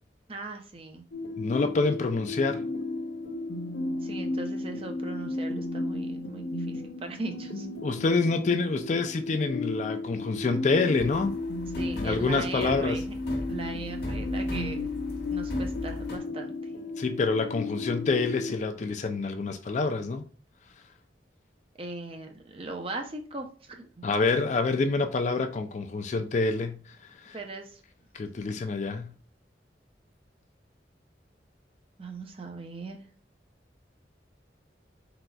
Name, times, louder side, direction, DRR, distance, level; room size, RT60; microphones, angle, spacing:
voice 1, 0.3-1.0 4.0-7.7 11.8-13.1 13.5-14.9 15.3-16.7 21.8-24.0 27.3-27.8 32.0-33.1, right 2 dB, 30° right, 0.6 m, -39 dB
sound 1, 1.1-18.6, left 2 dB, 80° left, 0.7 m, -34 dB
voice 2, 1.4-2.6 7.8-11.4 11.9-13.0 17.0-20.3 24.0-27.4 28.1-29.1, left 3 dB, 40° left, 0.4 m, -27 dB
sound 2, 11.0-16.2, left 1 dB, 65° left, 1.4 m, -38 dB
4.3 x 3.9 x 2.3 m
head